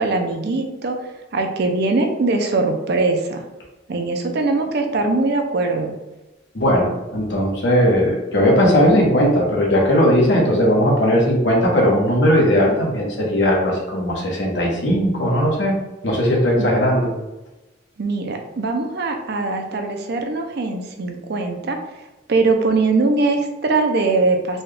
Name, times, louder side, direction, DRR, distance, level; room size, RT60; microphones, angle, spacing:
voice 1, 0.0-3.4 3.9-5.9 16.6-16.7 18.0-22.0 22.3-24.6, right 3 dB, 60° right, 4 dB, 0.5 m, -21 dB
voice 2, 6.5-15.8 16.0-17.1, equal, 65° left, -2 dB, 1.0 m, -17 dB
4.1 x 2.3 x 3.3 m, 1.0 s
head